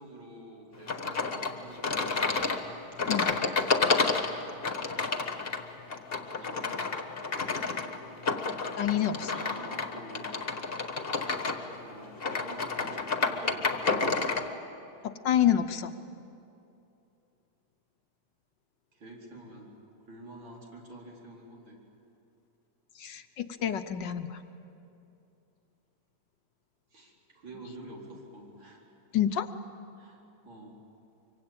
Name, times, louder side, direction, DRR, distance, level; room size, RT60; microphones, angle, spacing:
voice 1, 0.0-1.9 6.1-6.8 8.8-10.4 10.7-10.9 11.8-14.3 18.9-19.8 20.1-21.8 26.9-28.8 30.0-30.8, right 1 dB, 70° right, -2 dB, 5.0 m, -48 dB
sound 1, 0.9-14.5, left 4 dB, 30° left, 1.4 m, -30 dB
voice 2, 8.8-9.3 15.0-15.9 23.0-24.4 29.1-29.5, left 10 dB, 65° left, 9 dB, 1.4 m, -28 dB
24.5 x 24.5 x 8.9 m, 2.8 s
omnidirectional pair, 2.2 m